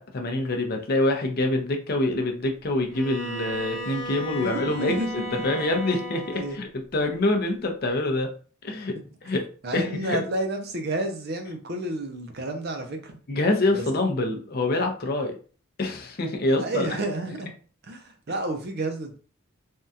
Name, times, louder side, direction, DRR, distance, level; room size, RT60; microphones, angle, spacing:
voice 1, 0.0-8.3 8.6-9.0 9.2-9.5 9.7-10.2 13.3-15.4 15.8-16.9, left 2 dB, 45° left, 3 dB, 0.6 m, -26 dB
Bowed string instrument, 2.9-6.6, equal, 15° right, 1.0 m, -35 dB
voice 2, 4.3-5.5 6.3-6.6 9.0-9.1 9.6-13.2 16.6-17.5 17.9-19.2, right 1 dB, 50° right, 4 dB, 0.6 m, -31 dB
3.5 x 2.2 x 2.7 m, 0.40 s
head